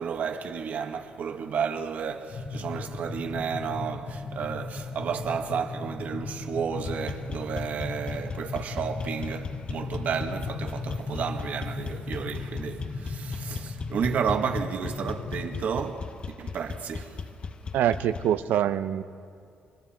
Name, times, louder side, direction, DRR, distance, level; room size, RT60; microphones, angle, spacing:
voice 1, 0.0-17.3, right 6 dB, 60° right, 1.8 m, -32 dB
sound 1, 2.3-15.6, left 4 dB, 55° left, 2.0 m, -37 dB
sound 2, 6.7-18.4, left 5 dB, 35° left, 0.8 m, -38 dB
voice 2, 17.7-19.0, right 10 dB, 85° right, 0.9 m, -24 dB
29.5 x 25.5 x 4.5 m
cardioid pair, 125°, 3 cm